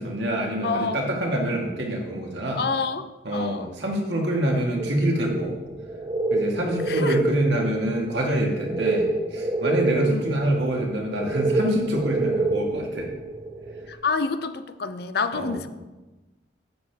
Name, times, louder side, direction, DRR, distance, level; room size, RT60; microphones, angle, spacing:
voice 1, 0.0-2.6 3.2-5.6 6.3-13.1 15.3-15.6, right 1 dB, 70° right, -1 dB, 1.8 m, -26 dB
voice 2, 0.6-1.0 2.6-3.7 6.9-7.2 10.0-10.4 13.9-15.7, left 4 dB, 55° left, 11 dB, 0.5 m, -28 dB
sound 1, 4.8-13.9, right 2 dB, 35° right, 0.9 m, -28 dB
10.5 x 7.7 x 3.5 m, 1.1 s
head